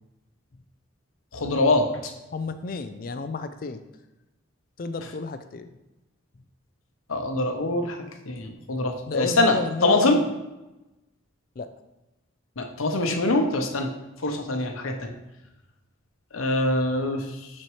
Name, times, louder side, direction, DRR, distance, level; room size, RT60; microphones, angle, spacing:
voice 1, 1.3-2.1 7.1-8.0 8.3-10.2 12.6-13.9 14.2-15.1 16.3-17.2, left 2 dB, 90° left, 4 dB, 0.8 m, -24 dB
voice 2, 2.3-3.8 4.8-5.7 9.1-10.3 11.6-11.7, left 4 dB, 45° left, 10 dB, 0.4 m, -32 dB
9.1 x 4.3 x 3.2 m, 1.0 s
head